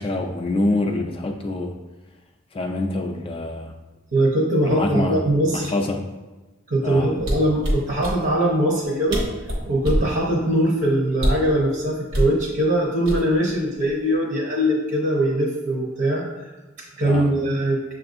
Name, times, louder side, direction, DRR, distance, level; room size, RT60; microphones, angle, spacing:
voice 1, 0.0-1.7 2.5-3.7 4.6-5.2 5.5-6.0 6.8-7.1 17.0-17.3, left 2 dB, 30° left, 2 dB, 0.3 m, -25 dB
voice 2, 4.1-5.7 6.7-9.2 9.7-16.3 17.0-17.8, right 1 dB, 60° right, -4 dB, 0.8 m, -21 dB
sound 1, 7.2-8.2 8.8-8.9 9.1-10.1 11.1-11.5 12.1-12.3 13.1-13.5 13.9-14.1, equal, 80° right, 1.2 m, -23 dB
6.7 x 2.5 x 2.5 m, 1.2 s
head